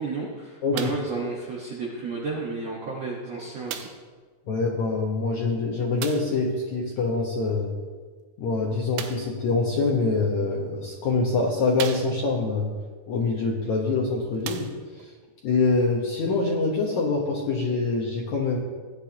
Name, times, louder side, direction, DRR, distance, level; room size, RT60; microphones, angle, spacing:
voice 1, 0.0-3.9, right 4 dB, 70° right, -4 dB, 1.5 m, -32 dB
sound 1, 0.7-1.2 2.1-2.2 3.7-4.1 6.0-6.4 8.9-9.4 10.4-10.5 11.1-11.2 11.7-12.5 13.7-13.8 14.4-15.1 15.9-16.0, right 9 dB, 85° right, 2.9 m, -36 dB
voice 2, 4.5-7.8 8.4-12.7 13.1-15.1 15.4-18.6, left 3 dB, 75° left, -2 dB, 1.7 m, -25 dB
17.0 x 10.0 x 2.9 m, 1.5 s
omnidirectional pair, 4.9 m